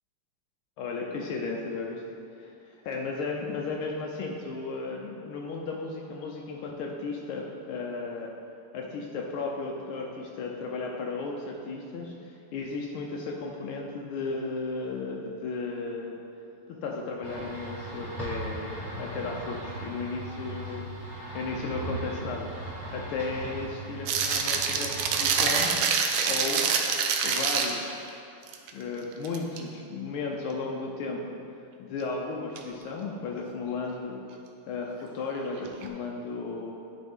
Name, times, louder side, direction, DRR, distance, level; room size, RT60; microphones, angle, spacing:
voice 1, 0.8-2.0 2.4-8.3 8.7-16.2 16.7-20.8 21.3-25.7 26.1-26.6 27.2-28.0 28.7-31.4 31.8-34.3 34.7-36.7, left 3 dB, 80° left, -1 dB, 1.5 m, -35 dB
sound 1, 17.2-25.7, right 2 dB, 35° right, 0.3 m, -38 dB
sound 2, 24.1-27.9 28.5-28.7 29.1-29.6 32.6-32.7 35.6-35.9, right 6 dB, 75° right, 1.3 m, -26 dB
11.0 x 4.0 x 3.6 m, 2.7 s
omnidirectional pair, 2.4 m